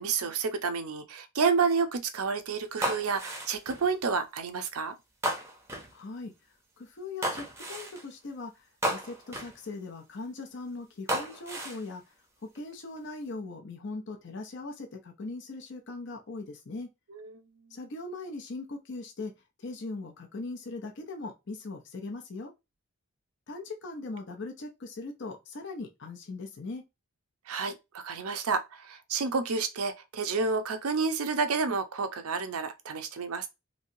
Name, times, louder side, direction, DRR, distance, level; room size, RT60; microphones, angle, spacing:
voice 1, 0.0-5.0 17.1-17.3 27.5-33.5, right 5 dB, 80° right, 0.6 m, -30 dB
sound 1, 2.8-3.9 5.2-5.9 7.2-8.0 8.8-9.6 11.1-11.9 12.6-13.0, right 1 dB, 10° right, 0.6 m, -33 dB
voice 2, 5.9-6.3 6.8-12.0 12.5-16.9 17.7-19.3 19.6-22.5 23.5-26.8, left 3 dB, 55° left, 0.6 m, -40 dB
3.1 x 2.8 x 2.6 m
head